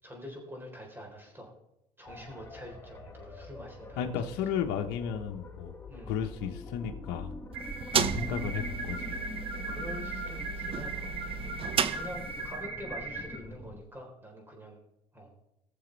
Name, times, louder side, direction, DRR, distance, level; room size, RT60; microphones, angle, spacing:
voice 1, 0.0-1.5 2.0-4.0 5.9-6.1 8.1-8.5 9.7-11.0 11.3-11.6 11.9-14.8 15.1-15.3, equal, 15° right, 1 dB, 3.9 m, -45 dB
sound 1, 2.1-13.8, left 3 dB, 15° left, 1.5 m, -45 dB
voice 2, 4.0-5.7 6.1-7.3 7.9-9.2, left 8 dB, 75° left, 4 dB, 1.1 m, -34 dB
sound 2, 7.5-12.6, right 7 dB, 35° right, 0.7 m, -34 dB
sound 3, 7.5-13.3, right 3 dB, 85° right, 2.8 m, -39 dB
20.5 x 7.1 x 3.4 m, 0.86 s
supercardioid pair, 105°, 16 cm